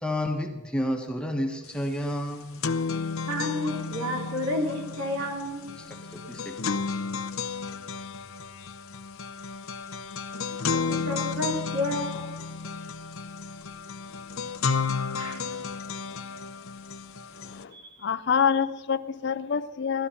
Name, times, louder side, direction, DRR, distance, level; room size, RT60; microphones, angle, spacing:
voice 1, 0.0-2.8 5.8-6.8, left 1 dB, 5° left, 2 dB, 1.3 m, -31 dB
sound 1, 1.7-1.8 2.1-17.6, left 5 dB, 70° left, 0.8 m, -32 dB
voice 2, 3.3-5.7 10.7-12.3 15.2-15.5 17.7-17.8, left 1 dB, 75° right, -1 dB, 3.9 m, -31 dB
voice 3, 18.0-20.1, left 6 dB, 50° left, 15 dB, 0.5 m, -26 dB
18.0 x 13.0 x 5.7 m, 1.2 s
head